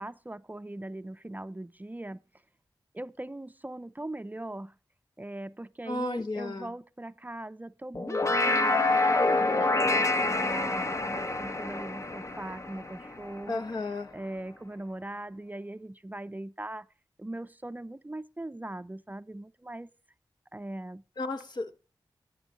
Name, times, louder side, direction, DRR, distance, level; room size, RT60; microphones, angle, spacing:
voice 1, 0.0-2.2 2.9-4.7 5.2-13.6 14.1-16.9 17.2-19.9 20.5-21.0, right 1 dB, 20° right, 0.6 m, -40 dB
voice 2, 5.9-6.7 13.5-14.1 21.2-21.8, left 2 dB, 60° left, 1.4 m, -33 dB
sound 1, 7.9-13.5, left 2 dB, 35° left, 0.9 m, -27 dB
13.5 x 9.0 x 5.0 m
wide cardioid pair, 65°, 8 cm